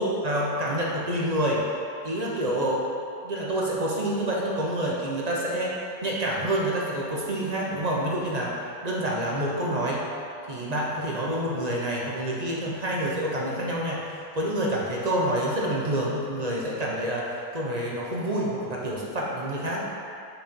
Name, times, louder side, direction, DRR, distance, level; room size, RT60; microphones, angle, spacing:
voice 1, 0.0-1.6 2.0-2.8 3.2-10.0 10.5-19.8, right 1 dB, 40° right, -4 dB, 0.5 m, -28 dB
5.6 x 5.0 x 5.3 m, 2.6 s
omnidirectional pair, 1.9 m